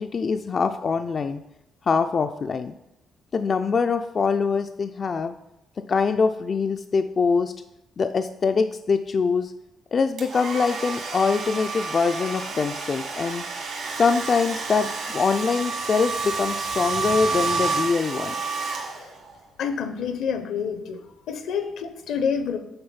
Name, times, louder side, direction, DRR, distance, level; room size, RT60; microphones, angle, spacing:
voice 1, 0.0-1.4 1.9-2.7 3.3-5.3 5.9-7.5 8.0-9.5 9.9-13.4 14.0-18.3, left 5 dB, 45° left, 7 dB, 0.3 m, -23 dB
Domestic sounds home sounds, 10.2-19.3, right 4 dB, 70° right, 1.8 m, -29 dB
voice 2, 19.6-21.0 21.3-22.6, left 6 dB, 80° left, 9 dB, 0.8 m, -28 dB
7.8 x 3.9 x 5.6 m, 0.87 s
cardioid pair, 90°, 0 cm